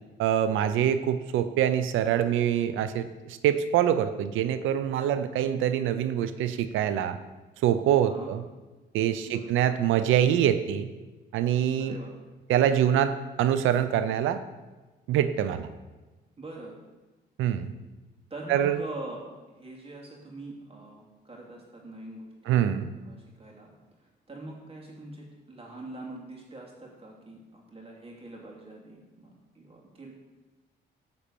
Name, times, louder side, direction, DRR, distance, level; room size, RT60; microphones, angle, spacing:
voice 1, 0.2-7.2 7.6-8.4 8.9-10.9 11.3-12.0 12.5-14.4 15.1-15.7 17.4-17.7 18.5-18.8 22.5-22.9, right 10 dB, 90° right, 11 dB, 0.6 m, -25 dB
voice 2, 11.8-12.1 16.4-16.8 18.3-19.2 19.6-22.5 23.0-23.7 24.3-30.1, right 2 dB, 30° right, -1 dB, 2.7 m, -43 dB
9.7 x 4.3 x 6.9 m, 1.2 s
cardioid pair, 90°, 20 cm